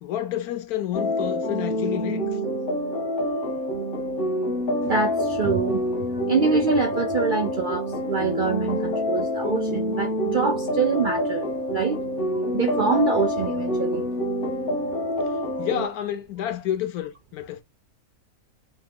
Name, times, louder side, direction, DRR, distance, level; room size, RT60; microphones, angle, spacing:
voice 1, 0.0-2.2 15.6-17.6, left 11 dB, 80° left, 1.2 m, -29 dB
sound 1, 0.9-15.9, left 1 dB, 45° left, 0.8 m, -27 dB
voice 2, 4.8-5.8 6.1-12.0 12.5-14.1 15.6-15.7, right 5 dB, 75° right, 0.4 m, -25 dB
3.1 x 2.0 x 3.5 m
omnidirectional pair, 1.6 m